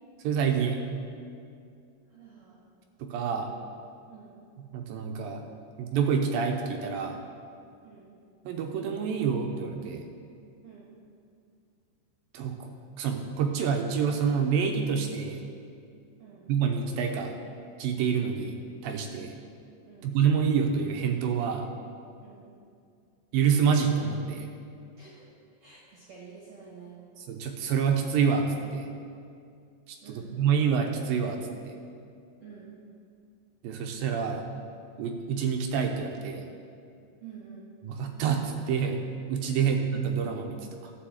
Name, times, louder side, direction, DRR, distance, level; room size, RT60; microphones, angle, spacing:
voice 1, 0.2-0.8 3.0-3.6 4.6-5.4 5.8-7.2 8.5-10.0 12.3-15.4 16.5-17.3 17.8-19.3 20.0-21.7 23.3-24.5 27.3-28.9 29.9-31.4 31.7-31.8 33.6-34.5 35.0-36.5 37.8-40.9, right 6 dB, 80° right, 4 dB, 2.4 m, -27 dB
voice 2, 2.1-2.6 4.1-4.4 7.8-8.1 10.6-11.0 16.2-16.5 19.2-19.4 19.9-20.1 22.2-22.5 25.0-25.2 25.6-27.0 30.0-30.4 32.4-32.7 37.2-37.7, right 6 dB, 55° right, -5 dB, 2.1 m, -49 dB
11.5 x 5.6 x 7.2 m, 2.4 s
omnidirectional pair, 4.2 m